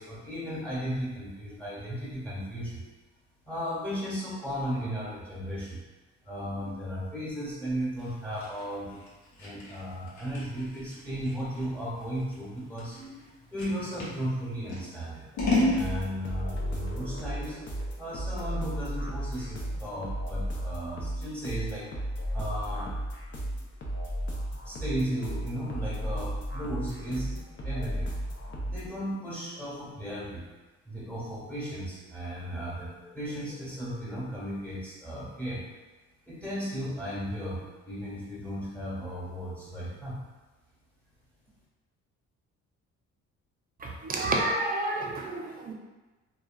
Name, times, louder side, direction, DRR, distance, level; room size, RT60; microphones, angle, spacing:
voice 1, 0.0-2.8 3.4-5.8 6.2-9.0 9.4-17.6 18.0-21.9 22.3-22.9 23.3-23.4 24.6-27.3 27.6-28.1 28.6-30.5 30.8-35.6 36.3-40.2, equal, 5° left, -8 dB, 1.1 m, -35 dB
Scissors, 8.0-14.2 14.7-15.8, left 2 dB, 70° left, 0.8 m, -32 dB
sound 1, 15.4-28.9, equal, 40° left, 0.6 m, -34 dB
voice 2, 43.8-45.7, right 2 dB, 30° right, 0 dB, 0.5 m, -30 dB
2.7 x 2.3 x 2.3 m, 1.2 s
cardioid pair, 90°, 30 cm